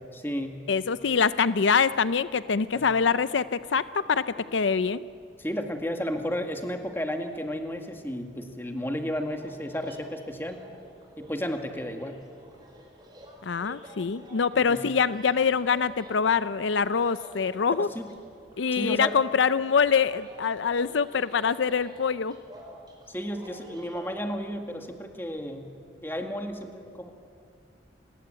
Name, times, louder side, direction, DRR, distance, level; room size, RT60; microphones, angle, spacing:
voice 1, 0.1-0.6 2.7-2.9 5.4-10.6 11.2-12.1 14.5-14.8 17.8-18.1 18.7-19.2 23.1-25.7 26.0-27.1, equal, 10° left, 4 dB, 2.0 m, -33 dB
voice 2, 0.7-5.0 13.4-17.9 18.6-22.4, left 6 dB, 80° left, 15 dB, 0.6 m, -24 dB
sound 1, 9.1-24.2, equal, 20° right, 4.8 m, -50 dB
29.0 x 20.0 x 9.0 m, 2.4 s
head